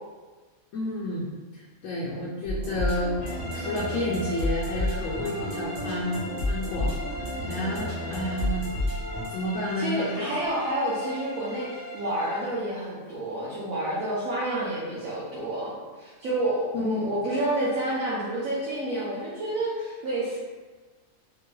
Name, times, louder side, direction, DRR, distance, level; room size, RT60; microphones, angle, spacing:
voice 1, 0.7-1.3 1.5-8.6 9.3-10.4 16.7-16.8, left 1 dB, 70° left, -6 dB, 0.9 m, -31 dB
sound 1, 2.5-9.3, left 1 dB, 60° right, 1.5 m, -31 dB
sound 2, 3.2-12.7, left 1 dB, 85° left, 0.3 m, -39 dB
voice 2, 9.8-20.4, right 1 dB, 75° right, -9 dB, 1.2 m, -29 dB
3.8 x 2.9 x 2.2 m, 1.4 s
omnidirectional pair, 1.5 m